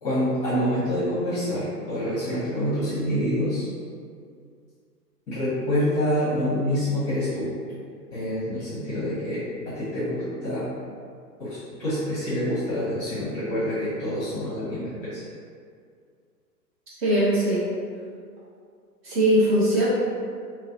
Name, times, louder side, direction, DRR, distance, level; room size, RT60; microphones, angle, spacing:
voice 1, 0.0-3.7 5.3-7.5 8.1-10.7 11.4-15.2, equal, 15° left, -12 dB, 0.7 m, -27 dB
voice 2, 17.0-17.6 19.0-19.8, right 1 dB, 40° right, -9 dB, 0.8 m, -20 dB
2.4 x 2.1 x 2.6 m, 2.2 s
figure-of-eight pair, 115°, 49 cm